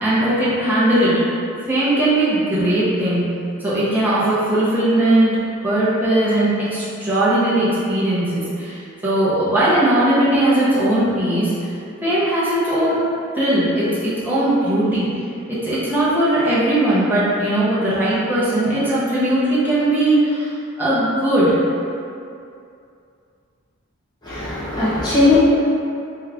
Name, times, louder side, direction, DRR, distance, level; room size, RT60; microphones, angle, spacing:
voice 1, 0.0-1.1 1.7-3.2 3.6-5.4 5.6-11.5 12.0-13.0 13.3-15.1 15.6-20.5 20.8-21.6, right 1 dB, 10° right, -11 dB, 1.0 m, -18 dB
voice 2, 24.2-25.4, left 2 dB, 20° left, -12 dB, 1.3 m, -18 dB
3.3 x 3.3 x 3.6 m, 2.5 s
head